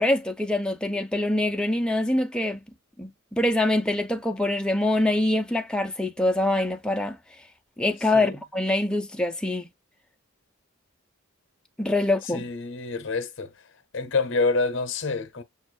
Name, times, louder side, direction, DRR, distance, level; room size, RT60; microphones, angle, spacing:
voice 1, 0.0-2.6 3.0-7.2 7.8-9.7 11.8-12.4, left 1 dB, 5° left, 0.6 m, -24 dB
voice 2, 12.3-13.5 13.9-15.4, left 3 dB, 55° left, 0.8 m, -27 dB
7.1 x 2.4 x 2.2 m
head